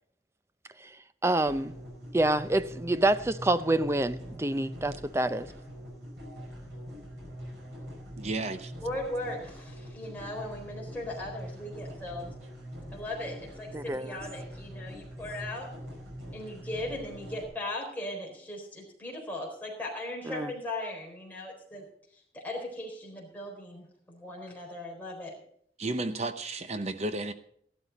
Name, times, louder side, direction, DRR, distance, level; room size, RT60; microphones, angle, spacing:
voice 1, 1.2-1.7 2.1-5.5 13.7-14.2 20.3-20.5, right 2 dB, 15° right, 0.5 m, -27 dB
sound 1, 1.4-17.4, equal, 85° right, 5.2 m, -43 dB
voice 2, 8.2-8.7 25.8-27.3, right 2 dB, 40° right, 0.8 m, -32 dB
voice 3, 8.8-12.3 12.9-15.7 16.3-21.9 22.3-25.3, left 1 dB, 10° left, 4.1 m, -38 dB
15.0 x 12.0 x 4.1 m
head